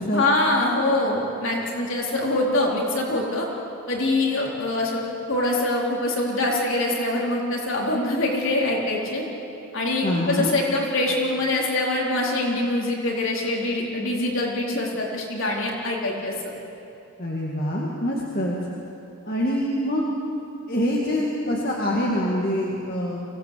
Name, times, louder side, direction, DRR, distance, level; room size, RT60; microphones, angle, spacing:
voice 1, 0.1-3.5 3.9-5.0 5.3-9.2 9.7-16.3, left 2 dB, 60° left, -2 dB, 4.3 m, -24 dB
voice 2, 10.0-10.5 17.2-18.6 19.3-20.1 20.7-23.2, equal, 40° left, -3 dB, 2.2 m, -25 dB
24.0 x 17.5 x 8.6 m, 2.7 s
head